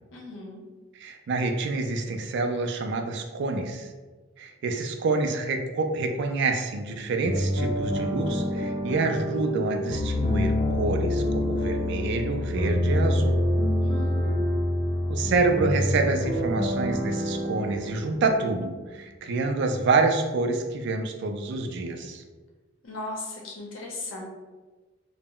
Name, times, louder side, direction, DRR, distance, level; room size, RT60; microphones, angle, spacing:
voice 1, 0.1-0.6 13.8-14.7 22.8-24.2, left 2 dB, 80° left, -1 dB, 0.7 m, -38 dB
voice 2, 1.0-3.9 4.4-13.4 15.1-22.2, right 3 dB, 60° right, 5 dB, 0.3 m, -27 dB
sound 1, 7.2-18.9, left 1 dB, 35° left, 0.4 m, -27 dB
2.1 x 2.0 x 3.6 m, 1.3 s
head